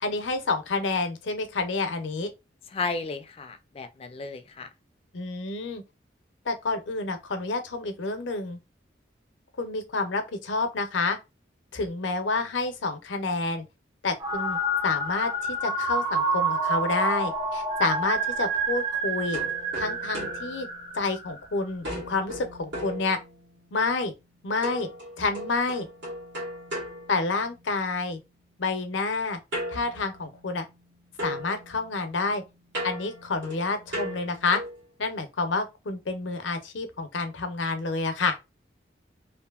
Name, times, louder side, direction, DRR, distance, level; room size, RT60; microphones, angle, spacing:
voice 1, 0.0-2.3 5.1-5.8 6.5-8.6 9.6-11.2 11.7-13.7 14.0-14.6 14.8-19.4 19.7-20.7 20.9-23.2 23.7-24.1 24.4-24.9 25.2-25.9 27.1-28.2 28.6-29.4 29.7-30.7 31.2-32.4 32.8-34.6 35.0-38.4, left 3 dB, 85° left, 0.6 m, -29 dB
voice 2, 2.7-4.7, left 4 dB, 30° left, 0.3 m, -33 dB
sound 1, 14.2-21.5, right 2 dB, 20° right, 0.6 m, -28 dB
sound 2, 19.3-21.4 21.8-23.7 24.6-27.9 29.5-30.9 31.2-34.9, equal, 80° right, 1.5 m, -38 dB
2.7 x 2.5 x 2.3 m
head